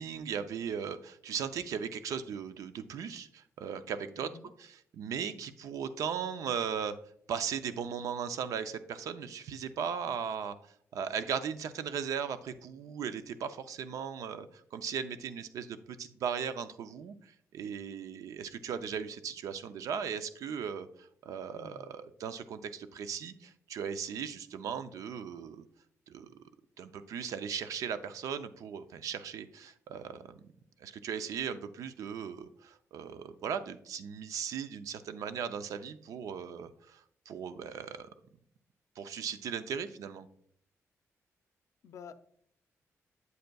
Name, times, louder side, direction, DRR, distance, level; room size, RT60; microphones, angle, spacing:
voice 1, 0.0-4.3 4.6-6.9 7.3-25.6 26.1-26.3 26.8-30.5 30.8-38.1 39.0-40.3, right 7 dB, 85° right, 11 dB, 0.5 m, -37 dB
voice 2, 4.2-4.5 21.5-21.9 41.8-42.1, left 6 dB, 70° left, 11 dB, 0.5 m, -49 dB
8.0 x 7.7 x 2.3 m, 0.66 s
wide cardioid pair, 150°, 6 cm